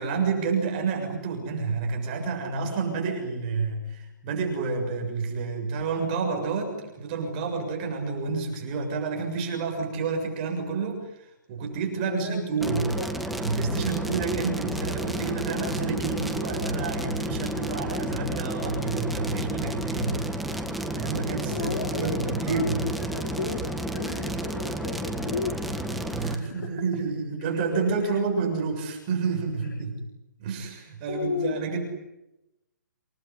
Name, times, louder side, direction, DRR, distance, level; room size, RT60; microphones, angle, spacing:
voice 1, 0.0-12.9 13.4-20.2 20.9-22.8 26.1-30.0 30.4-31.8, right 4 dB, 25° right, 2 dB, 7.0 m, -29 dB
voice 2, 12.1-13.4 21.5-25.7 26.3-26.7 27.7-28.1 31.1-31.7, left 5 dB, 70° left, 2 dB, 5.1 m, -35 dB
sound 1, 12.6-26.4, right 1 dB, ahead, 1.6 m, -31 dB
28.5 x 20.0 x 9.9 m, 0.90 s
hypercardioid pair, 170°, 10 cm